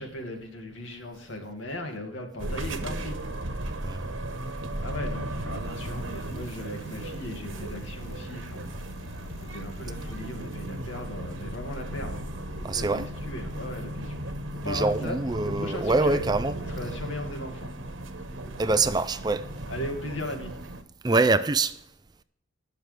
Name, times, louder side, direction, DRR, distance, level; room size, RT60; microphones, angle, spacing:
voice 1, 0.0-3.2 4.8-8.7 9.5-12.3 12.7-15.2 15.4-16.2 16.6-17.7 18.9-19.0 19.7-20.5, left 1 dB, 80° left, 2.2 m, -37 dB
sound 1, 2.4-20.8, right 1 dB, 85° right, 1.2 m, -36 dB
voice 2, 3.8-4.2 12.6-13.1 14.6-16.5 18.6-19.5 21.0-21.8, right 3 dB, 20° right, 0.4 m, -25 dB
Bicycle, 5.6-11.0, left 3 dB, 50° left, 0.5 m, -48 dB
18.5 x 6.6 x 3.4 m
head